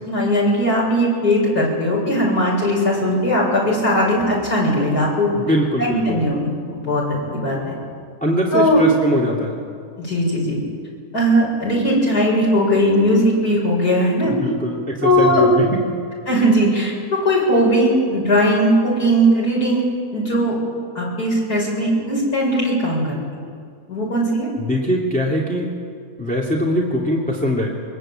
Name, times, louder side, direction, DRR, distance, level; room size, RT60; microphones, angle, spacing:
voice 1, 0.1-5.4 5.8-7.8 8.5-8.8 10.0-10.6 11.1-14.3 15.0-15.5 16.3-19.8 20.1-20.5 20.9-23.1 23.9-24.5, equal, 80° left, -3 dB, 8.0 m, -18 dB
voice 2, 5.4-6.2 8.2-9.6 14.3-15.9 24.6-25.7 26.2-27.7, equal, 5° left, -3 dB, 2.6 m, -22 dB
24.0 x 21.0 x 9.0 m, 2.1 s
omnidirectional pair, 1.7 m